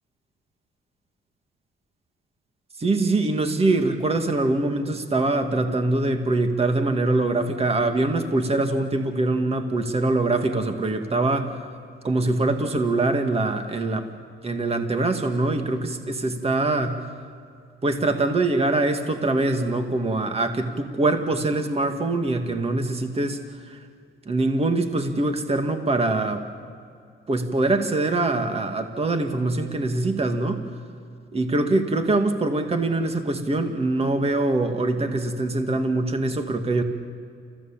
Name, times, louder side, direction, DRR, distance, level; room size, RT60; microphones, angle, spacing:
voice 1, 2.8-11.6 12.0-14.1 14.4-17.1 17.8-23.8 24.3-26.5 27.3-30.6 31.3-36.8, right 2 dB, 30° right, 6 dB, 2.1 m, -23 dB
29.5 x 15.5 x 7.4 m, 2.3 s
cardioid pair, 90°, 20 cm